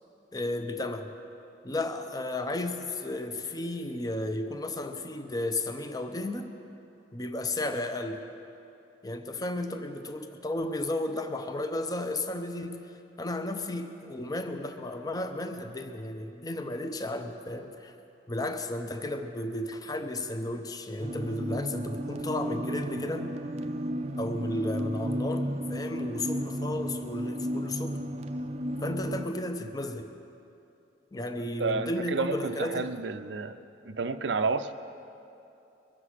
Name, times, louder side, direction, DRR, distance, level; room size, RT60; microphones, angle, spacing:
voice 1, 0.3-1.1 1.6-6.5 7.1-8.2 9.0-12.8 13.2-17.9 18.3-23.4 24.2-28.0 28.8-30.1 31.1-33.0, left 1 dB, 20° left, 6 dB, 0.7 m, -33 dB
sound 1, 21.0-29.3, equal, 35° right, 0.5 m, -33 dB
voice 2, 31.4-33.6 33.8-34.7, right 4 dB, 85° right, 10 dB, 0.6 m, -31 dB
22.5 x 7.6 x 6.4 m, 2.7 s
head